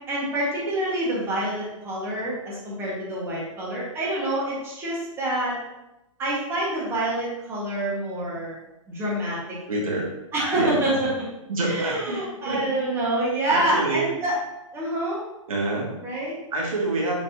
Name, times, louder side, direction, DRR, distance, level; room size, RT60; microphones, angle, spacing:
voice 1, 0.1-5.6 6.2-8.6 8.9-9.6 9.9-10.0 10.3-11.3 11.6-14.4 14.7-15.2 16.0-16.4, right 1 dB, 15° right, -6 dB, 1.6 m, -27 dB
voice 2, 9.7-10.1 10.5-10.8 11.5-12.6 13.5-14.1 15.5-15.9 16.5-17.2, right 2 dB, 85° right, -2 dB, 2.1 m, -27 dB
8.7 x 4.0 x 2.8 m, 0.93 s
hypercardioid pair, 160°, 17 cm